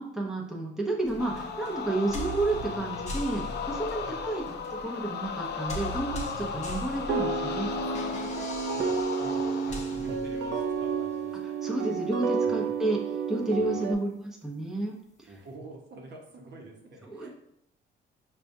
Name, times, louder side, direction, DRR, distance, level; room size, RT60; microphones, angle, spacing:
voice 1, 0.0-4.4 4.8-7.7 11.6-13.0 13.3-15.0 17.1-17.3, right 2 dB, ahead, -2 dB, 0.7 m, -31 dB
sound 1, 1.1-10.9, equal, 35° left, 0.9 m, -41 dB
sound 2, 1.2-10.1, left 6 dB, 60° left, 0.4 m, -36 dB
sound 3, 7.1-13.9, right 5 dB, 85° right, 0.4 m, -30 dB
voice 2, 8.7-11.3 12.4-12.8 13.5-13.8 15.3-17.3, right 2 dB, 60° right, 1 dB, 0.8 m, -47 dB
5.0 x 2.3 x 2.6 m, 0.77 s
cardioid pair, 90°, 20 cm